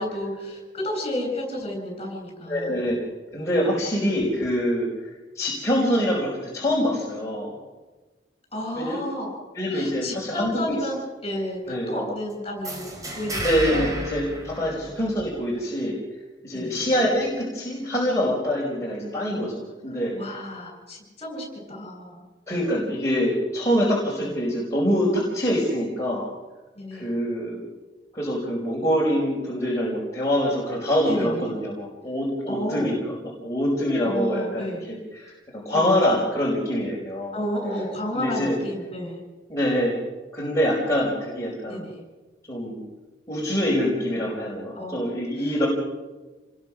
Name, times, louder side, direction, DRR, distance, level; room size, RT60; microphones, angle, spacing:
voice 1, 0.0-2.8 3.7-3.8 8.5-9.3 9.7-13.9 14.6-14.8 16.5-16.8 20.1-22.3 24.2-24.3 26.8-27.1 31.1-31.7 32.5-32.9 34.0-34.8 35.7-36.0 37.3-39.2 41.7-42.0 44.8-45.0 45.4-45.7, left 1 dB, 35° left, 2 dB, 7.7 m, -32 dB
voice 2, 2.5-3.0 3.3-4.9 5.3-7.6 8.7-9.0 9.5-10.8 11.7-11.9 13.4-16.0 16.4-20.1 22.5-26.3 26.9-27.6 28.1-37.3 38.1-38.6 39.5-39.9 40.3-41.8 42.5-42.8 43.3-45.7, equal, 20° left, -5 dB, 4.9 m, -25 dB
sound 1, 12.6-15.4, right 1 dB, 20° right, 3.9 m, -32 dB
28.0 x 21.0 x 6.3 m, 1.2 s
head